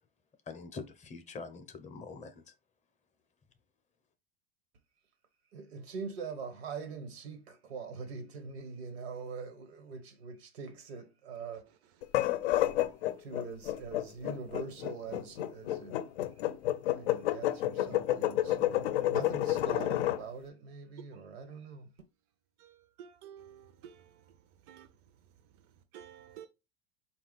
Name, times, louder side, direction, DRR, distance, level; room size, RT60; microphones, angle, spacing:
voice 1, 0.5-2.5, left 4 dB, 25° left, 0.6 m, -44 dB
voice 2, 5.5-11.7 13.2-16.0 16.9-21.9, right 5 dB, 85° right, 1.2 m, -43 dB
sound 1, 12.0-20.2, left 14 dB, 85° left, 0.5 m, -30 dB
voice 3, 23.0-24.0 24.7-24.9 25.9-26.5, right 9 dB, 55° right, 0.5 m, -50 dB
4.2 x 2.3 x 3.9 m
supercardioid pair, 120°, 30 cm